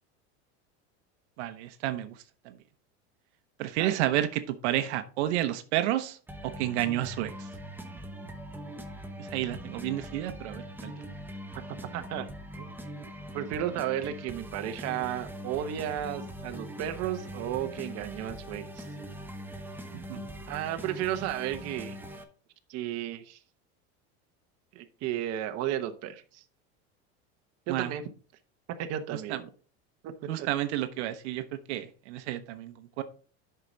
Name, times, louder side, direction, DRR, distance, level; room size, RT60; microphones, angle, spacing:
voice 1, 1.4-2.6 3.6-6.2 6.4-7.5 9.2-10.9 19.9-20.3 27.7-27.9 29.3-29.4 30.3-33.0, right 13 dB, 80° right, 9 dB, 0.9 m, -31 dB
sound 1, 6.3-22.2, equal, 5° right, 1.0 m, -42 dB
voice 2, 11.9-12.3 12.6-12.7 13.3-18.9 20.5-22.0 22.7-23.4 24.7-26.4 27.7-28.0 28.8-29.5 30.0-30.1 30.4-30.5, right 11 dB, 50° right, 7 dB, 1.0 m, -33 dB
8.0 x 5.8 x 3.9 m, 0.40 s
supercardioid pair, 130°, 34 cm